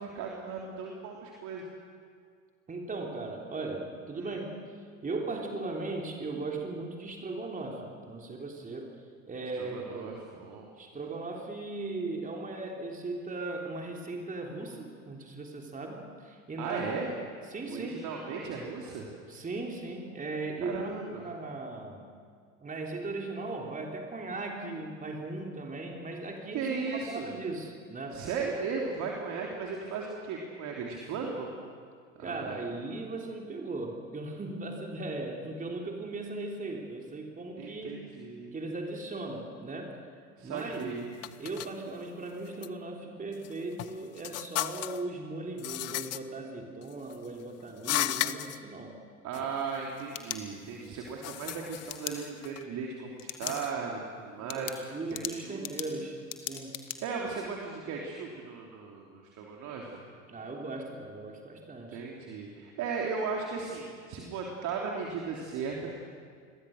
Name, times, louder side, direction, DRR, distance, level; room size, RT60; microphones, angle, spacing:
voice 1, 0.0-1.6 4.1-4.3 9.6-10.7 16.6-17.1 17.7-19.1 20.6-21.2 26.5-27.3 28.1-31.6 32.2-32.6 37.6-38.5 40.4-41.1 49.2-54.7 55.1-55.7 57.0-60.0 61.9-65.9, right 5 dB, 45° right, -1 dB, 3.3 m, -36 dB
voice 2, 2.7-4.7 5.0-8.9 9.3-10.2 10.8-16.9 17.5-18.0 19.3-21.0 21.2-22.0 22.6-28.2 32.2-38.0 38.5-40.0 40.4-40.9 41.4-49.0 49.3-49.5 54.4-56.8 60.3-62.0, right 2 dB, 20° right, 1 dB, 3.6 m, -38 dB
sound 1, 40.6-40.8 41.2-41.7 42.4-42.7 43.3-45.0 45.6-46.2 46.8-47.3 47.8-48.6 49.3-49.4 49.7-50.4 50.8-52.6 53.3-53.7, left 14 dB, 40° left, 1.0 m, -35 dB
sound 2, 49.8-50.9 51.9-52.1 53.2-53.6 54.0-54.1 54.5-57.0, left 11 dB, 70° left, 1.8 m, -39 dB
29.0 x 22.0 x 6.6 m, 2.1 s
figure-of-eight pair, 70°, 40 cm